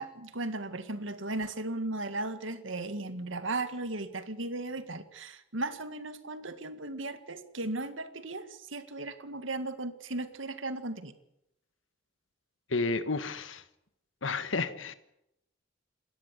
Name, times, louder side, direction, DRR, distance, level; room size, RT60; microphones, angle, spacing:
voice 1, 0.0-11.1, right 2 dB, 85° right, 10 dB, 2.0 m, -36 dB
voice 2, 12.7-13.6 14.2-14.9, left 3 dB, 80° left, 12 dB, 1.4 m, -31 dB
28.5 x 13.5 x 9.9 m, 0.83 s
head